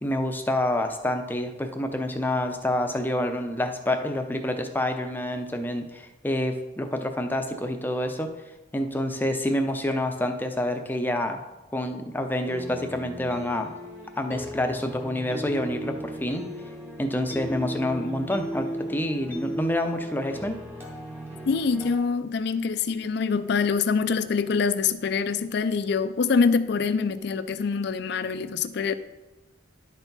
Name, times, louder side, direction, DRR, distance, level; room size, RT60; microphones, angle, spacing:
voice 1, 0.0-8.3 8.7-11.4 11.7-13.7 14.2-16.4 17.0-20.5, left 1 dB, 10° left, 0.6 m, -28 dB
sound 1, 12.4-21.9, equal, 10° right, 1.1 m, -36 dB
voice 2, 21.5-28.9, left 5 dB, 60° left, 0.4 m, -25 dB
11.0 x 4.4 x 4.0 m
head